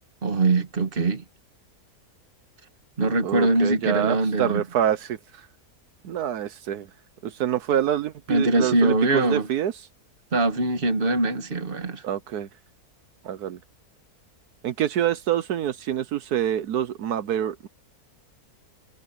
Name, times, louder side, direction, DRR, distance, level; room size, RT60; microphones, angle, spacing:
voice 1, 0.2-1.2 3.0-4.6 8.3-9.5 10.3-12.0, right 2 dB, 35° right, 1.7 m, -22 dB
voice 2, 3.2-5.5 6.0-6.9 7.2-9.7 12.0-12.5 13.2-13.6 14.6-17.7, right 10 dB, 80° right, 1.4 m, -26 dB
omnidirectional pair, 1.6 m